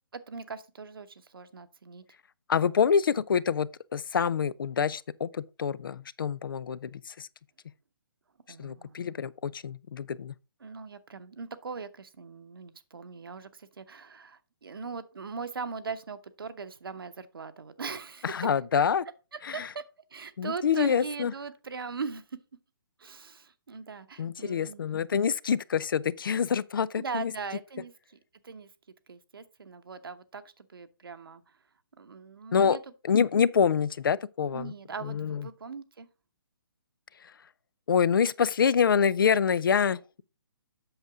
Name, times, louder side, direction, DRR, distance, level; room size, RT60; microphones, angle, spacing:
voice 1, 0.1-2.0 2.6-2.8 8.5-9.0 10.6-18.4 19.5-19.8 20.1-22.4 23.0-24.8 27.0-27.9 28.4-28.7 29.1-31.4 32.0-32.8 34.5-36.1, right 5 dB, 80° right, 1.0 m, -40 dB
voice 2, 2.5-7.3 8.6-10.3 18.2-19.1 19.4-19.7 20.4-21.3 24.2-27.3 32.5-32.8 33.0-34.7 35.0-35.5 37.2-37.3 37.9-40.2, left 7 dB, 70° left, 0.5 m, -26 dB
8.0 x 6.6 x 3.6 m
hypercardioid pair, 140°, 12 cm